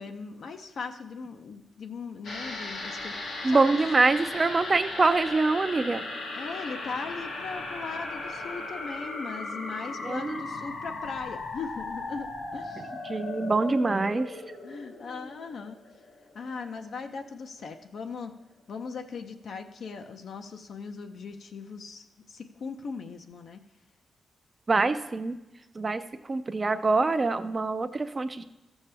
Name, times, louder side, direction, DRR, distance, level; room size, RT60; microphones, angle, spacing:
voice 1, 0.0-3.6 6.3-12.9 14.6-15.8 16.3-18.3 18.7-23.6, left 5 dB, 65° left, 6 dB, 0.6 m, -39 dB
sound 1, 2.2-16.9 17.2-17.3, left 2 dB, 90° left, 1.5 m, -37 dB
voice 2, 3.4-6.0 10.0-10.4 13.0-14.4 24.7-25.4 25.8-26.0 26.3-28.4, right 3 dB, 30° right, 9 dB, 0.4 m, -25 dB
14.0 x 7.1 x 3.4 m, 0.99 s
wide cardioid pair, 135°, 0 cm